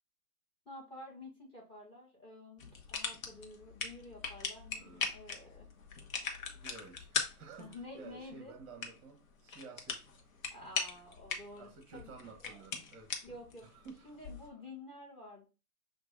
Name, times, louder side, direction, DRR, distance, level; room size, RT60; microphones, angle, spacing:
voice 1, 0.6-5.7 7.6-8.5 10.5-12.1 12.4-12.6 13.2-13.7 14.0-15.5, left 2 dB, 10° left, 1.5 m, -50 dB
sound 1, 2.6-14.5, left 5 dB, 60° left, 1.0 m, -41 dB
voice 2, 4.8-5.2 6.5-10.0 11.6-13.1 13.6-14.2, right 4 dB, 25° right, 1.0 m, -52 dB
6.0 x 2.6 x 2.4 m
hypercardioid pair, 135°, 46 cm